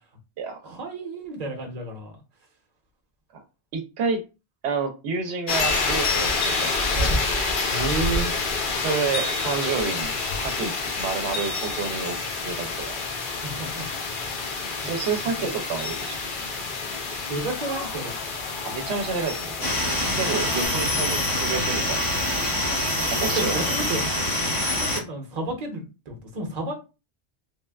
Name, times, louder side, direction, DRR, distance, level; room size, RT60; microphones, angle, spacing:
voice 1, 0.6-2.1 7.7-8.3 13.3-13.8 14.8-14.9 15.4-15.5 17.3-18.1 21.0-21.2 23.3-24.0 24.7-26.7, right 2 dB, 40° right, 0.9 m, -31 dB
voice 2, 3.7-4.2 4.6-6.3 6.6-7.2 7.8-7.9 8.7-12.2 12.4-13.0 14.8-16.2 18.6-19.7 20.2-22.1 23.0-23.6, right 5 dB, 85° right, 0.9 m, -29 dB
sound 1, 5.5-20.7, left 3 dB, 60° left, 0.7 m, -28 dB
sound 2, 19.6-25.0, left 1 dB, 25° left, 0.6 m, -25 dB
3.3 x 2.2 x 2.3 m
omnidirectional pair, 1.1 m